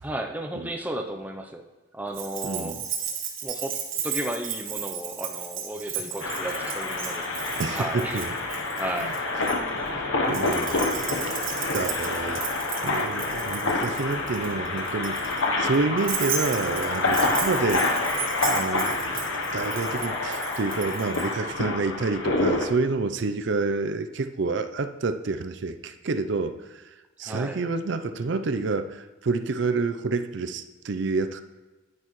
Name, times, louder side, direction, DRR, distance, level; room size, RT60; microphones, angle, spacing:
voice 1, 0.0-1.6 1.9-2.8 3.4-9.2 27.2-27.6, right 1 dB, 10° right, 3 dB, 0.5 m, -34 dB
Keys jangling, 2.1-9.6 10.3-21.3, right 8 dB, 70° right, 1.6 m, -34 dB
voice 2, 2.4-2.8 7.6-8.3 9.0-9.1 10.3-11.5 11.7-12.4 12.8-18.0 18.4-19.2 19.5-26.8 27.2-31.4, right 3 dB, 55° right, 10 dB, 0.5 m, -28 dB
sound 1, 6.2-22.7, left 2 dB, 65° left, 0.9 m, -27 dB
9.9 x 9.6 x 3.1 m, 1.2 s
head